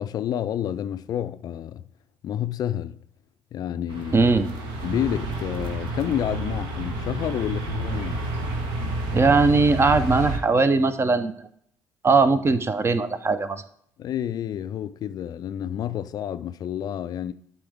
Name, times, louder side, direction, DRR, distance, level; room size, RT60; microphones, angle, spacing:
voice 1, 0.0-1.8 2.2-3.0 3.5-4.3 4.8-8.2 14.0-17.3, left 10 dB, 50° left, 0.4 m, -29 dB
sound 1, 3.9-10.4, right 2 dB, 65° right, 1.1 m, -30 dB
voice 2, 4.1-4.5 9.1-11.3 12.0-13.6, right 3 dB, 30° right, 0.6 m, -20 dB
11.5 x 4.2 x 3.4 m
figure-of-eight pair, 45°, 9 cm